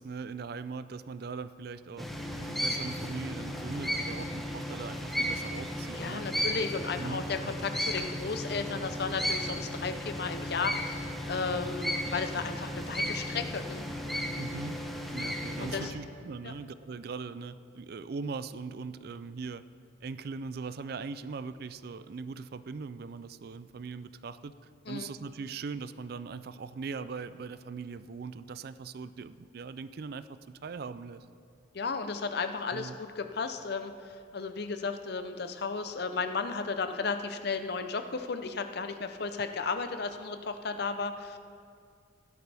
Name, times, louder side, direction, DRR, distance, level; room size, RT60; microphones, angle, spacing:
voice 1, 0.0-2.1 2.3-6.3 7.0-7.5 14.4-14.8 15.1-19.6 20.0-24.5 24.9-31.3 32.7-33.0, right 4 dB, 55° right, 14 dB, 0.4 m, -40 dB
sound 1, 2.0-15.9, equal, ahead, 1.0 m, -35 dB
voice 2, 5.9-13.8 15.6-15.9 16.4-16.5 24.9-25.1 31.7-33.9 34.3-41.4, left 4 dB, 55° left, 8 dB, 0.6 m, -34 dB
15.5 x 12.0 x 3.4 m, 2.3 s
head